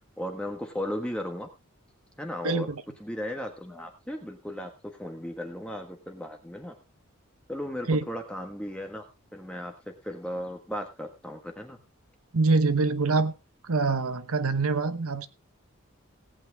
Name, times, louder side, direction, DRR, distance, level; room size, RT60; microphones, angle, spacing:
voice 1, 0.2-1.5 2.2-2.7 3.0-4.7 5.0-6.7 7.5-9.0 9.3-11.8, left 1 dB, 5° left, 1.4 m, -36 dB
voice 2, 2.4-2.8 7.9-8.0 12.3-13.3 13.6-15.3, right 3 dB, 80° right, 1.0 m, -25 dB
17.5 x 8.9 x 3.4 m
head